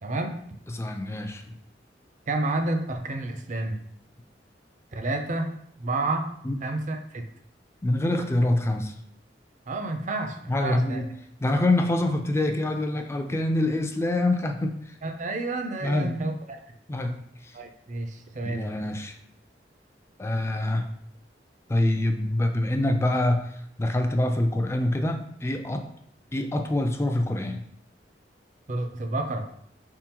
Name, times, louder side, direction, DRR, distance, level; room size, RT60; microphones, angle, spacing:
voice 1, 0.0-0.4 2.3-3.8 4.9-5.5 5.8-6.3 6.6-7.2 9.7-11.0 15.0-16.6 17.5-18.6 28.7-29.5, right 2 dB, 45° right, 5 dB, 0.5 m, -30 dB
voice 2, 0.7-1.6 6.4-6.6 7.8-8.9 10.5-11.1 11.4-14.8 15.8-16.1 16.9-17.5 18.4-19.2 20.2-20.9 21.7-25.9 26.3-27.6, left 1 dB, 15° left, 5 dB, 0.4 m, -25 dB
4.8 x 3.6 x 2.9 m, 0.69 s
head